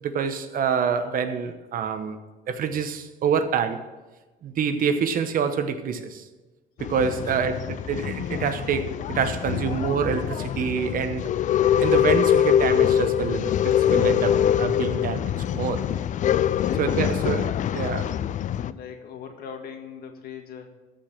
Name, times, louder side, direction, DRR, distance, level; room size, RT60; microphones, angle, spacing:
voice 1, 0.0-2.2 2.5-3.8 4.4-6.2 6.8-11.3 11.8-15.8 16.8-18.2, right 6 dB, 55° right, 9 dB, 1.0 m, -26 dB
Male speech man speaking / Chatter / Rattle, 6.8-18.7, left 10 dB, 50° left, 0.4 m, -24 dB
voice 2, 16.5-17.4 18.6-20.7, left 7 dB, 65° left, 4 dB, 1.9 m, -40 dB
14.5 x 5.2 x 7.5 m, 1.2 s
cardioid pair, 110°, 17 cm